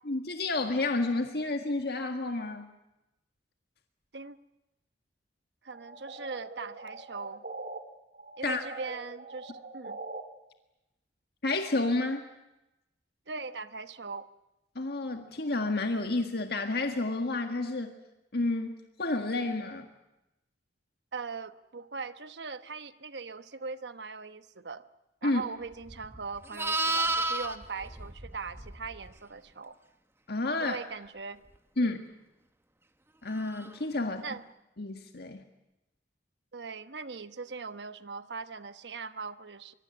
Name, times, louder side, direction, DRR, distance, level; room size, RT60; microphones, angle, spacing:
voice 1, 0.1-2.7 8.4-8.6 11.4-12.2 14.8-18.0 18.3-19.9 25.2-25.4 30.3-30.8 31.8-32.0 33.2-34.2 34.8-35.4, left 2 dB, 65° left, 5 dB, 1.7 m, -30 dB
voice 2, 5.6-7.4 8.4-10.0 13.3-14.3 21.1-24.8 25.2-29.8 30.6-31.4 31.8-32.0 34.0-34.4 36.5-39.7, right 4 dB, 75° right, 12 dB, 1.1 m, -40 dB
sound 1, 5.7-7.8 8.1-10.2, right 3 dB, 55° right, 2.9 m, -43 dB
Livestock farm animals working animals, 25.8-29.1 33.5-33.7, right 2 dB, 15° right, 1.3 m, -32 dB
24.5 x 22.5 x 9.8 m, 0.96 s
head